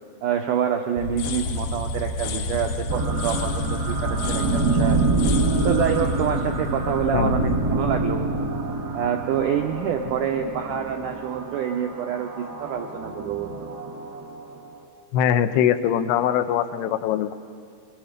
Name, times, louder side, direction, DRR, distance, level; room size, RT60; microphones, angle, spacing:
voice 1, 0.2-5.0 5.6-8.5 8.9-13.7, right 8 dB, 85° right, 4 dB, 1.8 m, -27 dB
sound 1, 1.0-7.8, left 2 dB, 65° left, 2.0 m, -30 dB
sound 2, 2.9-14.9, right 3 dB, 55° right, 1.1 m, -27 dB
voice 2, 7.1-7.5 15.1-17.3, left 9 dB, 85° left, 11 dB, 2.7 m, -22 dB
27.0 x 22.0 x 5.1 m, 2.2 s
omnidirectional pair, 4.7 m